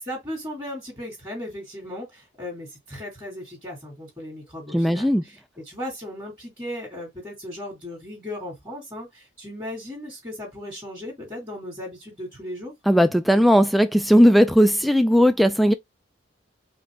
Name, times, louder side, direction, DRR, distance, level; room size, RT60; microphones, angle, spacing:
voice 1, 0.1-5.4 5.6-12.7, left 1 dB, 20° right, 2.4 m, -36 dB
voice 2, 4.7-5.2 12.9-15.7, equal, ahead, 0.3 m, -17 dB
4.9 x 2.8 x 3.5 m
head